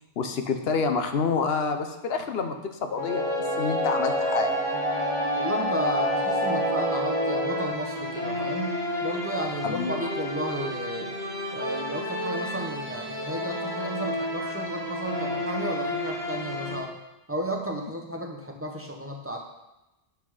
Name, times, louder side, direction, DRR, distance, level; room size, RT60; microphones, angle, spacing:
voice 1, 0.2-3.3 3.6-4.5 9.6-9.9, left 5 dB, 65° left, 6 dB, 0.9 m, -27 dB
sound 1, 2.9-7.8, right 1 dB, 35° left, 1.0 m, -28 dB
sound 2, 2.9-16.7, left 1 dB, 15° left, 2.5 m, -32 dB
voice 2, 5.3-11.1 11.5-17.0 17.3-19.4, right 1 dB, 15° right, 1 dB, 0.9 m, -33 dB
7.9 x 6.0 x 4.9 m, 0.98 s
omnidirectional pair, 1.2 m